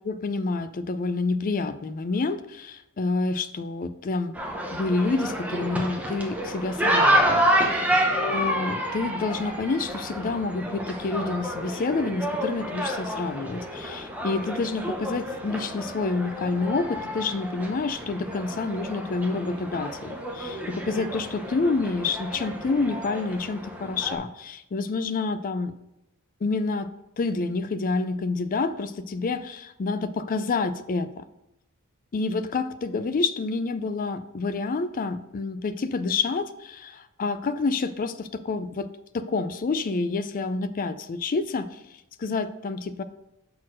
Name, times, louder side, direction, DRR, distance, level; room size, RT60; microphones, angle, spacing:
voice 1, 0.0-4.3 4.7-7.8 8.2-25.7 26.4-26.9 27.2-31.2 32.1-38.9 39.1-41.8 42.2-43.0, left 3 dB, 40° left, 13 dB, 0.4 m, -28 dB
sound 1, 4.3-24.2, right 1 dB, 5° right, 0.8 m, -29 dB
5.8 x 4.3 x 6.2 m, 0.90 s
head